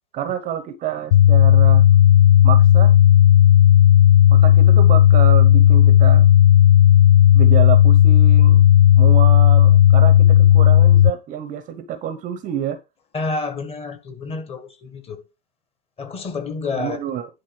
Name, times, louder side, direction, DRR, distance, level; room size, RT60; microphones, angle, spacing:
voice 1, 0.1-1.9 2.4-2.9 4.3-6.3 7.3-8.6 9.0-12.8 16.7-17.3, right 10 dB, 25° right, 0.9 m, -28 dB
sound 1, 1.1-11.1, left 11 dB, 55° left, 0.4 m, -12 dB
voice 2, 13.1-15.2 16.0-17.0, left 3 dB, 20° left, 1.7 m, -29 dB
10.0 x 4.1 x 6.0 m
hypercardioid pair, 125°, 32 cm